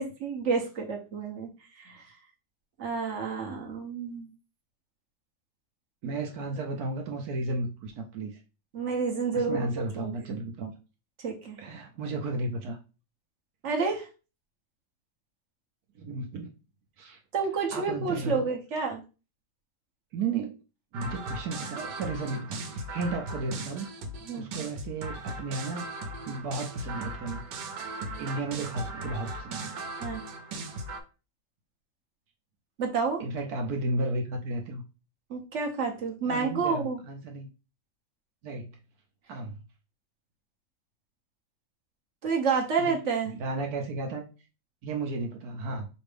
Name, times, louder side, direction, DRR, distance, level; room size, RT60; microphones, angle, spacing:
voice 1, 0.0-1.5 1.8-2.1 2.8-4.3 8.7-10.1 11.2-11.6 13.6-14.1 17.3-19.0 24.3-24.5 30.0-30.2 32.8-33.2 35.3-37.0 42.2-43.4, right 5 dB, 50° right, 2 dB, 1.1 m, -29 dB
voice 2, 6.0-8.4 9.3-10.7 11.6-12.8 15.9-16.5 17.0-17.2 17.7-18.5 20.1-20.6 20.9-23.9 24.3-25.9 26.3-27.5 28.2-29.7 33.2-34.8 36.3-37.5 38.4-38.8 39.3-39.6 42.8-42.9 43.3-44.2 44.8-45.9, right 2 dB, 70° right, 3 dB, 1.1 m, -33 dB
sound 1, 20.9-31.0, right 2 dB, 85° right, 1.4 m, -38 dB
5.3 x 2.6 x 3.3 m, 0.32 s
omnidirectional pair, 1.8 m